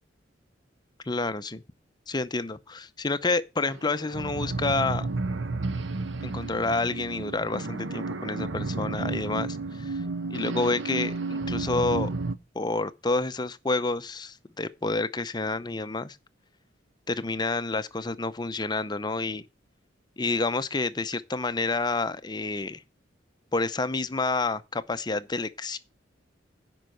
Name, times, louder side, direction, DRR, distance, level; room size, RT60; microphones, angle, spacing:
voice 1, 1.1-1.6 2.1-5.1 6.2-10.0 10.3-12.1 12.5-16.2 17.1-19.4 20.2-22.8 23.5-25.8, left 3 dB, 25° left, 0.6 m, -29 dB
sound 1, 3.6-12.4, right 3 dB, 85° right, 0.9 m, -32 dB
10.0 x 5.4 x 7.7 m
head